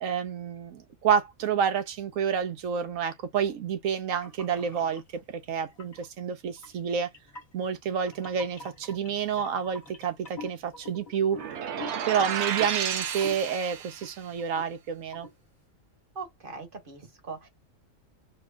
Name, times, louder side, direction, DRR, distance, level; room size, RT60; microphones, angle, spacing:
voice 1, 0.0-7.1 7.5-11.4 12.0-15.3, right 7 dB, 80° right, 1.2 m, -29 dB
sound 1, 4.2-5.0 5.6-6.1 6.6-14.1 14.4-14.8 15.1-15.3, left 2 dB, 35° left, 1.6 m, -45 dB
sound 2, 11.3-14.2, right 8 dB, 60° right, 0.9 m, -32 dB
voice 2, 16.1-17.5, right 4 dB, 45° right, 1.2 m, -40 dB
5.3 x 3.1 x 2.3 m
omnidirectional pair, 1.4 m